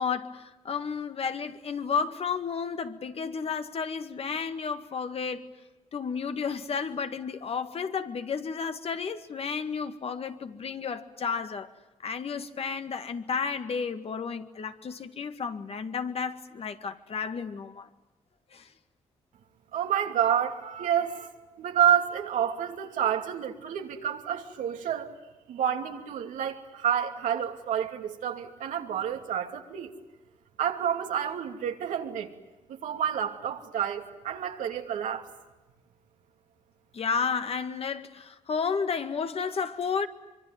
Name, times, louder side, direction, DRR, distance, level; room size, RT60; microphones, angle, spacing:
voice 1, 0.0-5.5 5.9-11.7 12.0-17.9 18.5-18.7 36.9-40.1, left 6 dB, 50° left, 1.9 m, -32 dB
voice 2, 19.7-21.3 21.6-25.1 25.5-29.9 30.6-32.3 32.7-35.3, right 9 dB, 90° right, 2.7 m, -29 dB
25.0 x 24.0 x 9.3 m
cardioid pair, 85°, 13 cm